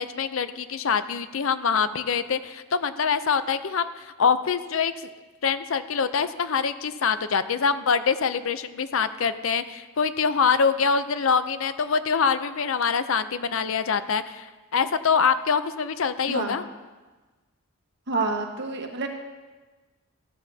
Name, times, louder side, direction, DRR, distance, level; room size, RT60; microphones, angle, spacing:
voice 1, 0.0-4.9 5.4-16.6, left 6 dB, 65° left, 12 dB, 0.6 m, -24 dB
voice 2, 16.3-16.6 18.1-19.1, right 3 dB, 50° right, 2 dB, 1.4 m, -28 dB
15.0 x 13.0 x 2.8 m, 1.3 s
head